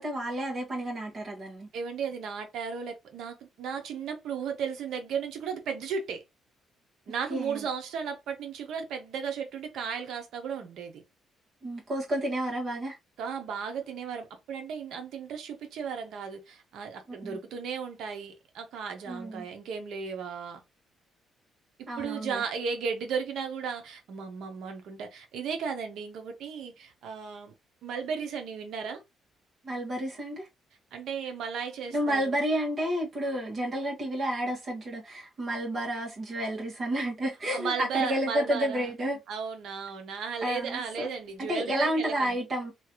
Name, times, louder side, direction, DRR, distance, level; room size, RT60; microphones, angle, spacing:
voice 1, 0.0-1.7 7.3-7.6 11.6-13.0 17.1-17.4 19.1-19.4 21.9-22.4 29.6-30.5 31.9-39.2 40.4-41.1 41.4-42.7, right 1 dB, 45° right, 1.4 m, -31 dB
voice 2, 1.7-6.2 7.1-11.0 13.2-20.6 22.0-27.5 27.8-29.0 30.9-32.4 37.5-38.9 39.3-42.4, right 6 dB, 75° right, 0.9 m, -35 dB
3.1 x 2.5 x 2.9 m
cardioid pair, 90°, 0 cm